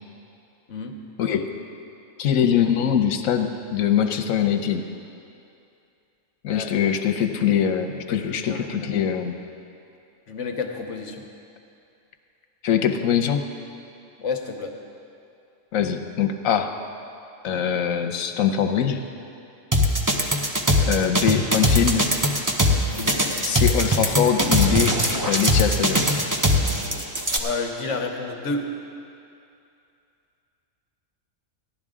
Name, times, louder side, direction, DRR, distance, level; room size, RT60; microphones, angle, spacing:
voice 1, 0.7-1.0 6.5-6.7 8.1-8.9 10.3-11.2 14.2-14.7 22.9-23.3 27.4-28.7, left 4 dB, 65° left, 4 dB, 1.2 m, -30 dB
voice 2, 1.2-1.5 2.2-4.8 6.4-9.4 12.6-13.4 15.7-16.7 17.4-19.0 20.8-22.1 23.4-26.1, left 8 dB, 85° left, 6 dB, 1.1 m, -23 dB
sound 1, 19.7-27.4, equal, 20° right, 0.7 m, -20 dB
16.0 x 11.5 x 3.7 m, 2.6 s
omnidirectional pair, 1.4 m